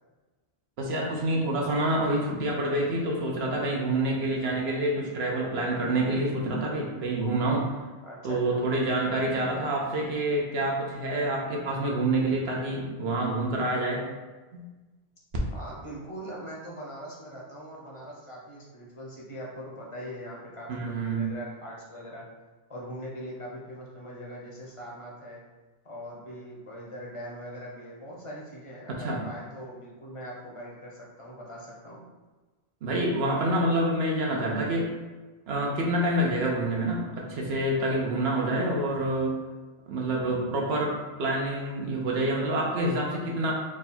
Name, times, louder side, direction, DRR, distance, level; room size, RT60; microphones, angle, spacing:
voice 1, 0.8-7.7 8.2-14.1 14.5-14.6 20.7-21.3 28.9-29.2 32.8-34.9 35.5-39.4 39.9-43.5, right 1 dB, 80° right, -1 dB, 1.0 m, -27 dB
voice 2, 8.0-8.6 15.5-22.2 22.7-25.4 25.8-32.0, equal, 35° left, -4 dB, 0.7 m, -41 dB
3.6 x 2.2 x 4.2 m, 1.2 s
omnidirectional pair, 1.0 m